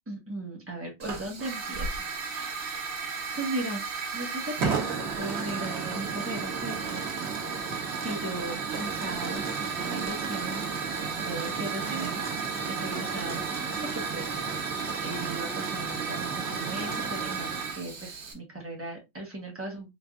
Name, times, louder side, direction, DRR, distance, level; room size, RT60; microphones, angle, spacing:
voice 1, 0.1-7.0 8.0-10.6 11.0-12.2 12.7-13.6 13.9-14.4 15.0-19.9, right 2 dB, 15° right, -1 dB, 1.1 m, -37 dB
Hiss / Fire, 1.0-18.3, right 5 dB, 85° right, 1.2 m, -32 dB
3.3 x 3.1 x 2.3 m, 0.22 s
omnidirectional pair, 1.1 m